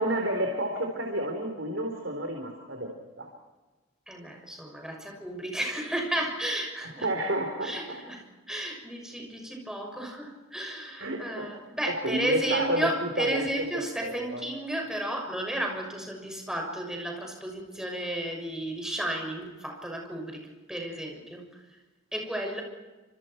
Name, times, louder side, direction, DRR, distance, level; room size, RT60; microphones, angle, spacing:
voice 1, 0.0-2.9 3.2-3.3 7.0-8.0 11.0-11.5 12.0-13.4 13.7-14.4, right 1 dB, 70° right, 2 dB, 4.1 m, -30 dB
voice 2, 4.1-7.1 7.6-21.8 22.1-22.6, right 1 dB, 5° right, 2 dB, 6.5 m, -33 dB
29.5 x 27.5 x 4.6 m, 1.2 s
head